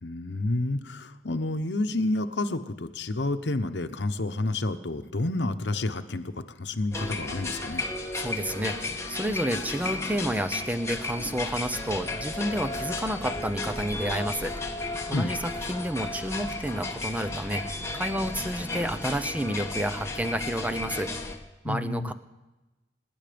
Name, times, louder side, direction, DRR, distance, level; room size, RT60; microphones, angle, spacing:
voice 1, 0.0-7.8 15.1-15.3 21.6-22.1, left 2 dB, 70° left, 8 dB, 1.0 m, -29 dB
sound 1, 6.9-21.4, left 2 dB, 15° left, 1.5 m, -34 dB
voice 2, 8.2-14.5 15.1-21.1 21.6-22.1, right 1 dB, 10° right, 10 dB, 0.8 m, -30 dB
25.5 x 10.5 x 5.2 m, 1.1 s
head